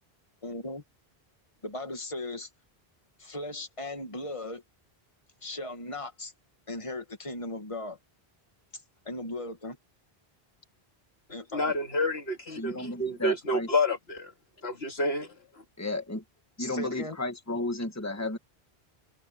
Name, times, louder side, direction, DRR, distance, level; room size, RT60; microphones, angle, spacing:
voice 1, 0.4-0.8 1.6-2.5 3.2-4.6 5.4-6.3 6.7-8.0 9.1-9.8 11.3-11.7 16.6-17.2, left 2 dB, 30° left, 2.0 m, -37 dB
voice 2, 11.5-14.3 14.6-15.3, left 1 dB, 85° left, 2.3 m, -29 dB
voice 3, 12.5-13.7 15.8-16.2 16.6-18.4, left 2 dB, 15° left, 1.7 m, -33 dB
open air
omnidirectional pair, 1.0 m